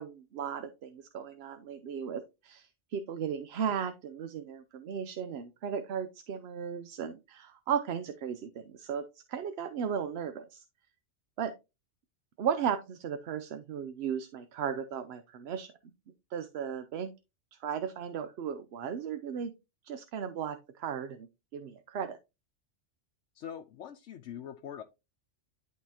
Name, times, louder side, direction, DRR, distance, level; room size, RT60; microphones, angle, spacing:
voice 1, 0.0-10.6 11.4-11.5 12.4-15.7 16.3-17.1 17.5-19.5 19.8-22.2, right 7 dB, 65° right, 0.8 m, -36 dB
voice 2, 23.4-24.8, left 9 dB, 85° left, 1.0 m, -43 dB
11.0 x 3.7 x 2.8 m
omnidirectional pair, 1.2 m